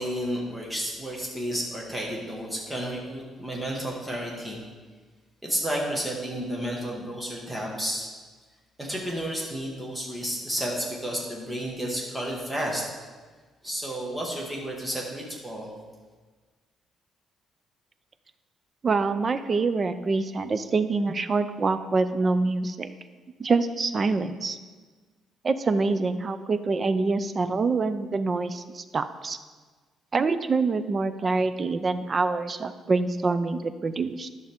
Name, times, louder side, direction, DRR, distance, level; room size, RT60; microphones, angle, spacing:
voice 1, 0.0-4.6 5.4-8.1 8.8-12.9 13.6-15.7, equal, 5° right, -2 dB, 1.6 m, -31 dB
voice 2, 18.8-22.9 23.4-24.6 25.4-29.4 30.1-34.3, right 3 dB, 30° right, 11 dB, 0.4 m, -25 dB
11.0 x 6.2 x 3.6 m, 1.4 s
cardioid pair, 155°, 0 cm